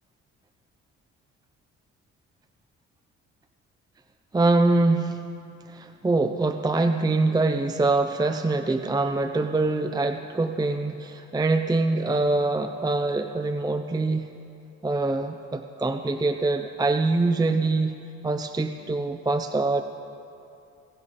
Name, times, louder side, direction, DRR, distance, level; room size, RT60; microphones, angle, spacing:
voice 1, 4.3-5.2 5.7-14.3 14.8-18.0 18.2-19.8, right 3 dB, 15° right, 8 dB, 0.5 m, -24 dB
17.5 x 16.0 x 4.2 m, 2.6 s
cardioid pair, 90°, 30 cm